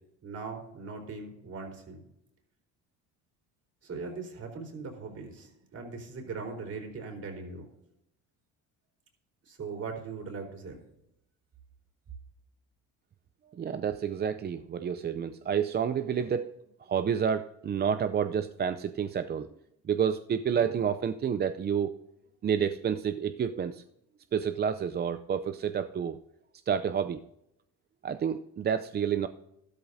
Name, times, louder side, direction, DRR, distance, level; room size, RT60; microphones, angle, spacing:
voice 1, 0.2-2.0 3.8-7.7 9.4-10.8, right 4 dB, 50° right, 2 dB, 4.0 m, -40 dB
voice 2, 13.5-16.5 16.8-19.5 19.8-21.9 22.4-23.8 24.3-26.2 26.7-27.2 28.0-29.3, right 7 dB, 30° right, 10 dB, 0.5 m, -29 dB
13.0 x 12.5 x 2.7 m, 0.82 s
cardioid pair, 95°, 32 cm